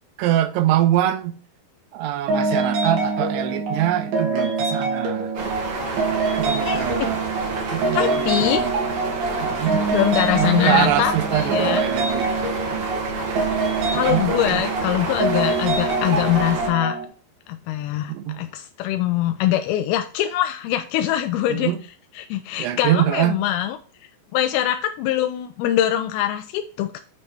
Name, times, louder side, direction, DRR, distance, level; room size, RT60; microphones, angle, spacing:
voice 1, 0.2-1.4 1.9-5.3 6.4-7.2 7.7-8.8 9.4-9.8 10.4-12.3 12.7-12.9 13.9-14.6 18.1-18.4 21.5-21.8 22.6-23.4, right 12 dB, 85° right, 2.7 m, -23 dB
sound 1, 2.3-17.1, right 3 dB, 70° right, 3.7 m, -25 dB
sound 2, 5.3-16.7, right 2 dB, 55° right, 2.2 m, -29 dB
voice 2, 6.6-7.1 7.9-8.6 9.9-11.9 13.9-17.0 17.5-21.7 22.1-23.8 24.3-27.0, left 12 dB, 80° left, 2.3 m, -23 dB
9.5 x 3.3 x 6.0 m
omnidirectional pair, 4.8 m